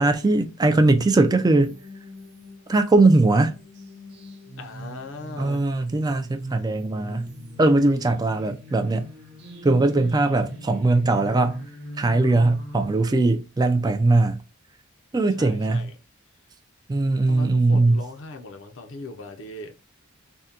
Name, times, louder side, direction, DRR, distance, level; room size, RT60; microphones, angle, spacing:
voice 1, 0.0-1.8 2.7-3.5 5.4-7.3 7.6-9.1 9.6-11.7 12.0-14.4 15.1-15.9 16.9-18.0, right 2 dB, 20° right, 0.3 m, -20 dB
sound 1, 1.6-12.9, equal, 55° right, 1.0 m, -42 dB
voice 2, 4.6-5.6 15.4-15.9 17.3-19.8, left 2 dB, 65° left, 0.6 m, -39 dB
3.5 x 2.2 x 2.7 m
head